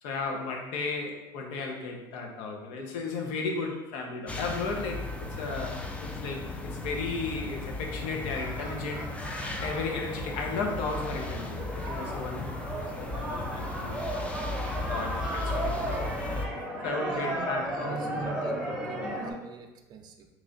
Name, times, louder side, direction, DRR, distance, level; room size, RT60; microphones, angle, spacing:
voice 1, 0.0-9.1 9.6-16.1 16.8-18.4, left 3 dB, 75° left, 2 dB, 0.8 m, -35 dB
sound 1, 4.3-16.5, left 2 dB, 10° left, 0.4 m, -36 dB
sound 2, 7.9-19.3, right 1 dB, 5° right, 0.8 m, -36 dB
voice 2, 17.0-20.3, right 5 dB, 45° right, 5 dB, 0.5 m, -41 dB
3.1 x 2.4 x 3.9 m, 1.0 s
supercardioid pair, 115°, 10 cm